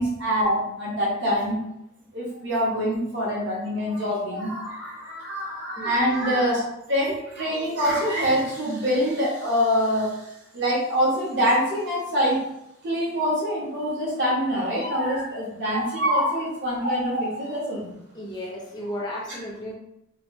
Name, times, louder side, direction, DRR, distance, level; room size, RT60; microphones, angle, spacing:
voice 1, 0.0-1.6 2.1-6.6 6.9-12.4 12.8-18.0, equal, 55° right, -5 dB, 1.2 m, -25 dB
voice 2, 18.1-19.7, left 1 dB, 20° left, -2 dB, 0.5 m, -34 dB
3.1 x 2.6 x 3.1 m, 0.83 s
head